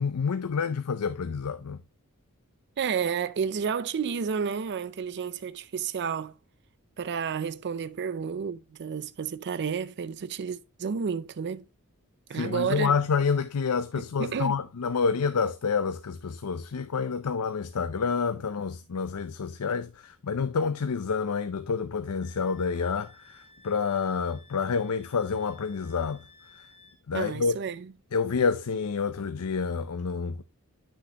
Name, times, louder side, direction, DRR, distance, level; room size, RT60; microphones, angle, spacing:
voice 1, 0.0-1.8 12.3-26.2 26.5-26.7 27.1-27.6 28.1-30.4, left 5 dB, 85° left, 0.6 m, -28 dB
voice 2, 2.8-6.3 7.0-11.6 12.3-12.9 14.2-14.6 27.1-27.8, right 6 dB, 50° right, 0.5 m, -31 dB
Wind instrument woodwind instrument, 22.2-27.0, left 3 dB, 25° left, 2.1 m, -56 dB
10.0 x 6.5 x 2.8 m
head